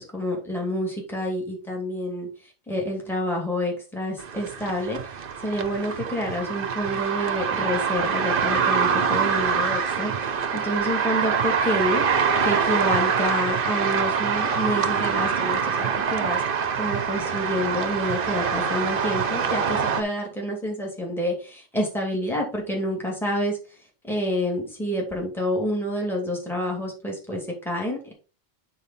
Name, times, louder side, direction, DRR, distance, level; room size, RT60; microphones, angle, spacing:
voice 1, 0.0-2.3 2.7-16.4 16.8-23.6 24.0-28.1, equal, ahead, -1 dB, 2.4 m, -28 dB
sound 1, 4.2-20.0, right 6 dB, 55° right, 0.9 m, -25 dB
8.9 x 4.3 x 4.2 m, 0.33 s
omnidirectional pair, 1.1 m